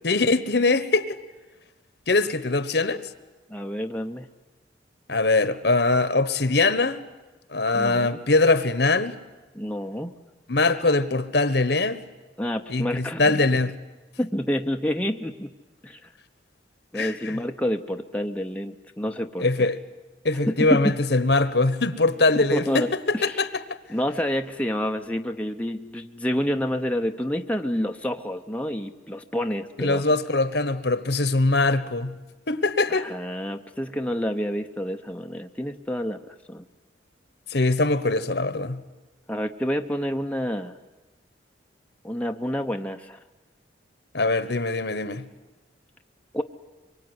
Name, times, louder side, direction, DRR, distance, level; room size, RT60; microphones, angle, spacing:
voice 1, 0.0-1.2 2.1-3.1 5.1-7.0 7.5-9.2 10.5-12.0 12.7-13.7 16.9-17.3 19.4-19.8 20.2-23.6 29.8-32.1 32.5-33.1 37.5-38.8 44.1-45.3, left 3 dB, 60° left, 1.2 m, -22 dB
voice 2, 3.5-4.3 7.7-8.2 9.5-10.1 12.4-13.4 14.2-15.5 15.8-16.1 16.9-19.5 20.5-20.9 22.5-23.4 23.9-30.0 32.9-36.2 36.5-36.6 39.3-40.7 42.0-43.2 46.3-46.4, equal, 5° left, 0.8 m, -28 dB
24.5 x 23.5 x 9.7 m
head